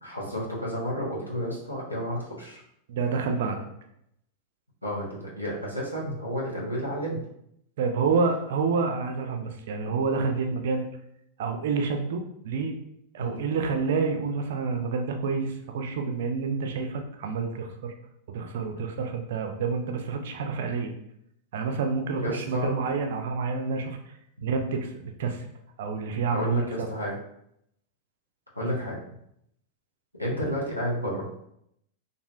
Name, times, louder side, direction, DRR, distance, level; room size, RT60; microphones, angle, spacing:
voice 1, 0.0-2.6 4.8-7.2 13.2-13.5 22.1-22.7 26.3-27.2 28.5-29.0 30.2-31.3, equal, 90° left, -5 dB, 0.7 m, -31 dB
voice 2, 2.9-3.7 7.8-10.9 11.4-12.8 13.1-17.9 18.3-20.9 21.5-24.0 24.4-25.4 25.8-26.9 28.6-28.7, right 4 dB, 55° right, 5 dB, 0.3 m, -28 dB
2.5 x 2.1 x 2.4 m, 0.75 s
figure-of-eight pair, 90°, 0 cm